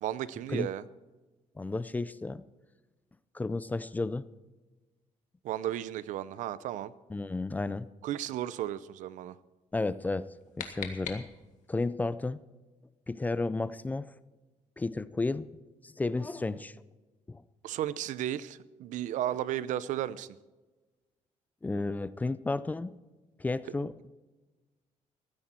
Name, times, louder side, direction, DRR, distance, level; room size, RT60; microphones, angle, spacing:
voice 1, 0.0-0.8 5.4-6.9 8.0-9.4 17.6-20.3, right 12 dB, 85° right, 17 dB, 0.6 m, -34 dB
voice 2, 1.6-2.4 3.3-4.2 7.1-7.9 9.7-10.3 10.6-11.3 11.7-12.4 13.1-14.1 14.8-15.5 15.8-16.7 17.3-17.4 21.6-23.0 23.4-24.1, left 3 dB, 15° left, 16 dB, 0.4 m, -32 dB
sound 1, 10.1-11.8, left 8 dB, 80° left, 1.8 m, -43 dB
15.5 x 13.0 x 4.4 m, 1.2 s
cardioid pair, 160°, 13 cm